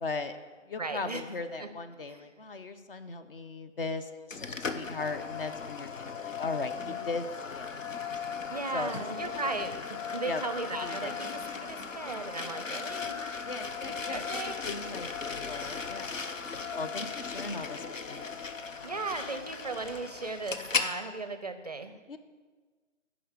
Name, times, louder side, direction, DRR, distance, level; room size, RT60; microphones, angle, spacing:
voice 1, 0.0-0.4 0.7-7.7 8.7-8.9 9.2-9.3 10.3-11.1 13.4-14.2 14.6-16.2 16.4-18.2 22.1-22.2, left 3 dB, 45° left, 9 dB, 0.8 m, -38 dB
voice 2, 0.8-1.2 1.6-2.3 6.7-7.0 8.5-13.5 14.1-14.5 15.3-15.9 16.7-16.8 18.8-22.0, right 3 dB, 35° right, 9 dB, 0.5 m, -37 dB
sound 1, 4.3-20.9, left 5 dB, 90° left, 0.9 m, -37 dB
11.0 x 5.0 x 8.0 m, 1.4 s
figure-of-eight pair, 150°, 38 cm